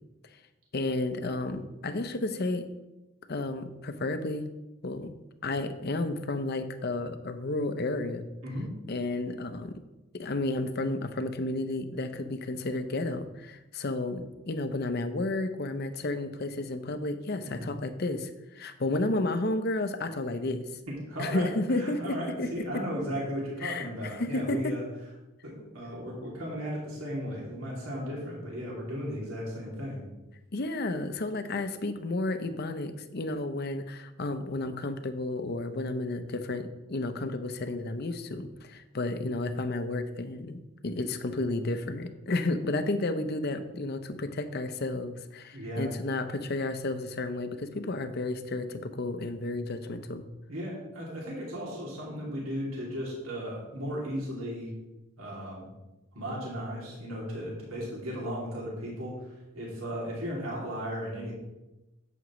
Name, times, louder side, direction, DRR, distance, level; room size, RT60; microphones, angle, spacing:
voice 1, 0.7-2.7 3.3-4.5 4.8-5.1 5.4-8.2 8.9-9.8 10.1-20.7 21.2-22.5 23.6-24.7 30.5-50.2, left 2 dB, 50° left, 9 dB, 0.7 m, -32 dB
voice 2, 20.9-24.8 25.4-30.0 45.5-45.9 50.5-54.7 55.2-55.6 56.1-61.3, equal, 75° right, -4 dB, 2.7 m, -36 dB
11.0 x 8.0 x 3.1 m, 1.0 s
head